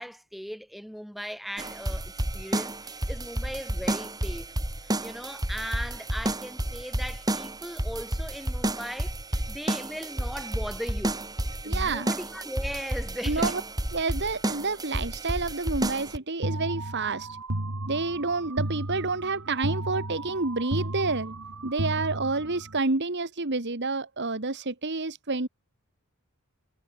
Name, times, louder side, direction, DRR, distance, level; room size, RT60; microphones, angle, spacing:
voice 1, 0.0-4.5 5.0-11.3 11.6-13.6, equal, ahead, 6.1 m, -38 dB
sound 1, 1.6-16.2, right 1 dB, 15° right, 2.6 m, -31 dB
voice 2, 11.6-12.1 13.3-13.6 13.9-17.3 17.9-21.4 21.6-25.5, right 3 dB, 50° right, 1.7 m, -29 dB
sound 2, 16.4-22.8, right 1 dB, 90° right, 3.1 m, -34 dB
head